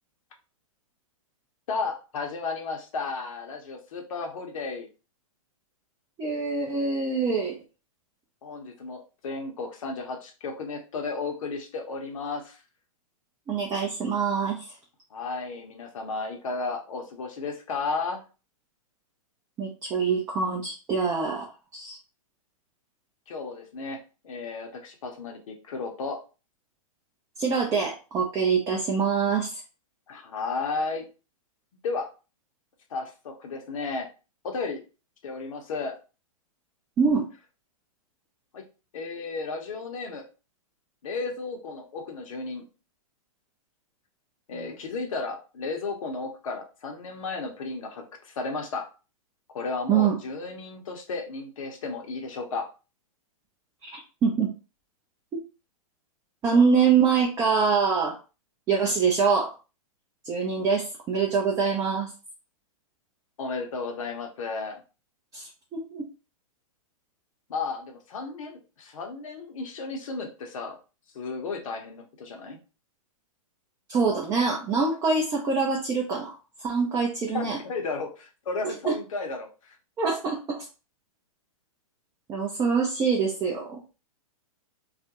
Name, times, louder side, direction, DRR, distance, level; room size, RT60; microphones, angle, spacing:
voice 1, 1.7-4.9 8.4-12.6 15.1-18.2 23.3-24.0 24.2-26.2 30.1-31.1 31.8-32.1 32.9-34.1 34.4-34.8 35.2-36.0 38.5-38.7 38.9-40.2 41.0-42.7 44.5-48.9 49.5-52.7 63.4-64.8 67.5-70.8 71.1-72.6 77.3-79.8, left 4 dB, 65° left, 3 dB, 0.8 m, -33 dB
voice 2, 6.2-7.6 13.5-14.7 19.6-22.0 27.4-29.6 37.0-37.3 44.5-44.8 49.9-50.2 53.8-54.5 56.4-58.2 58.7-59.5 60.2-62.1 65.3-66.0 73.9-76.3 76.6-77.6 78.9-79.0 80.0-80.7 82.3-83.8, right 5 dB, 20° right, -1 dB, 0.4 m, -25 dB
2.4 x 2.1 x 2.8 m, 0.33 s
hypercardioid pair, 115°, 18 cm